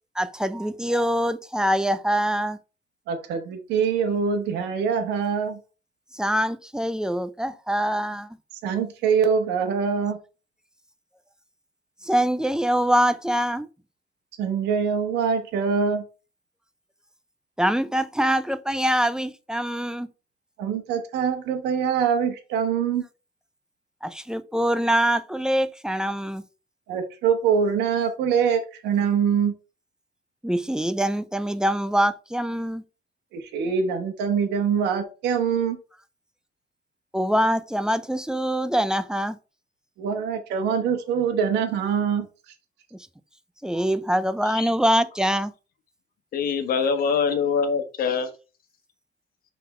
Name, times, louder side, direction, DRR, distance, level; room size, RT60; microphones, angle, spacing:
voice 1, 0.2-2.6 6.1-8.3 12.0-13.7 17.6-20.1 24.0-26.4 30.4-32.8 37.1-39.4 43.6-45.5, equal, 5° right, 0.5 m, -24 dB
voice 2, 3.1-5.6 8.6-10.2 14.4-16.0 20.6-23.0 26.9-29.5 33.3-35.8 40.0-42.3, right 6 dB, 85° right, 1.2 m, -24 dB
voice 3, 46.3-48.3, left 6 dB, 60° left, 1.3 m, -24 dB
5.7 x 3.8 x 4.3 m
cardioid pair, 110°, 17 cm